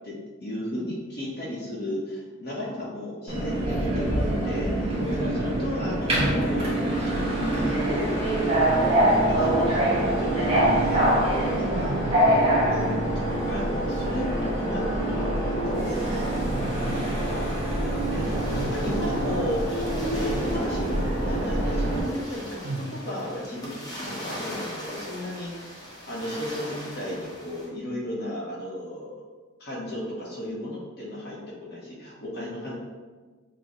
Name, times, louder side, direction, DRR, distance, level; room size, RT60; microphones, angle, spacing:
voice 1, 0.0-8.2 9.0-11.3 11.6-12.2 12.7-13.1 13.5-16.3 18.1-18.4 18.6-19.8 20.1-25.8 26.1-29.1 29.6-32.8, left 1 dB, 50° left, -4 dB, 0.9 m, -34 dB
Subway metro underground, 3.3-22.0, right 1 dB, 30° right, 1.5 m, -25 dB
voice 2, 5.2-5.7 11.8-12.7 16.5-17.5 18.2-19.3 22.6-22.9, right 2 dB, 55° right, 1 dB, 0.4 m, -35 dB
sound 1, 15.7-27.7, equal, 20° left, 0.9 m, -41 dB
6.4 x 2.2 x 3.0 m, 1.4 s
head